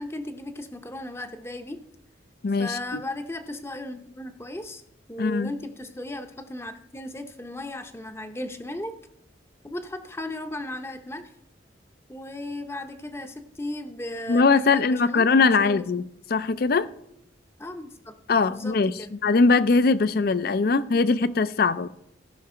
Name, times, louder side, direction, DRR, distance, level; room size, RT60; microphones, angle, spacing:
voice 1, 0.0-1.8 2.6-4.8 5.1-8.9 9.6-11.3 12.1-15.8 17.6-18.1 18.5-19.1, left 1 dB, 15° left, 0.6 m, -36 dB
voice 2, 2.4-3.0 5.2-5.5 14.3-16.0 16.3-16.9 18.3-21.9, left 4 dB, 50° left, 0.4 m, -21 dB
15.0 x 5.9 x 4.3 m
head